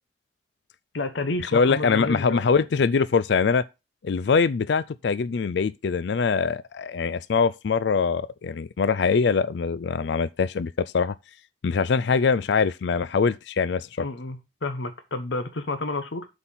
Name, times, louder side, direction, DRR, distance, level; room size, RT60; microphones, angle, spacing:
voice 1, 0.9-2.4 14.0-16.3, left 2 dB, 85° left, 0.9 m, -30 dB
voice 2, 1.5-3.6 4.0-11.1 11.6-13.9, left 5 dB, 65° left, 0.4 m, -23 dB
8.0 x 4.3 x 5.6 m
head